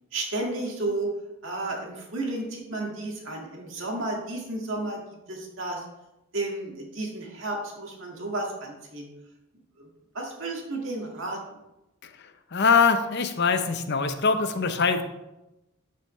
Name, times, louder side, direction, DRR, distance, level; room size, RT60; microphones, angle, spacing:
voice 1, 0.1-1.1 1.4-5.0 5.3-5.8 6.3-9.1 9.8-9.9 10.2-11.4, right 2 dB, 60° right, -1 dB, 1.9 m, -32 dB
voice 2, 12.5-15.0, left 5 dB, 50° left, 8 dB, 0.7 m, -22 dB
12.5 x 5.6 x 3.2 m, 0.94 s
head